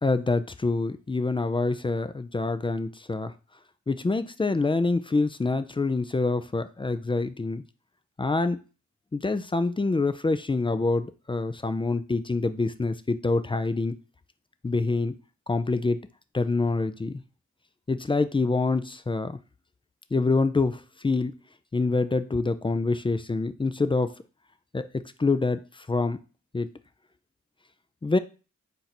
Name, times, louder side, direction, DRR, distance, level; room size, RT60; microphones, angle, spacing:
voice 1, 0.0-3.3 3.9-7.6 8.2-8.6 9.1-14.0 14.6-15.2 15.5-16.0 16.3-17.2 17.9-19.4 20.1-21.4 21.7-24.1 24.7-26.2 26.5-26.7 28.0-28.2, left 3 dB, 20° left, 11 dB, 0.3 m, -26 dB
4.5 x 2.6 x 4.1 m, 0.33 s
cardioid pair, 60°, 29 cm